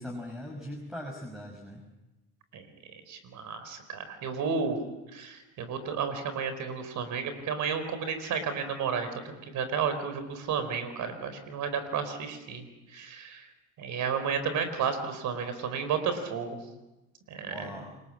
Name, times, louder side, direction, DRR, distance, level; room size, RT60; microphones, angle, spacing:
voice 1, 0.0-1.8 17.5-17.9, left 1 dB, ahead, 2 dB, 5.7 m, -40 dB
voice 2, 3.1-4.8 5.1-9.1 9.5-12.6 12.9-13.4 13.8-16.6 17.3-17.7, right 6 dB, 60° right, 10 dB, 4.5 m, -32 dB
28.5 x 21.0 x 7.4 m, 1.0 s
hypercardioid pair, 70°, 34 cm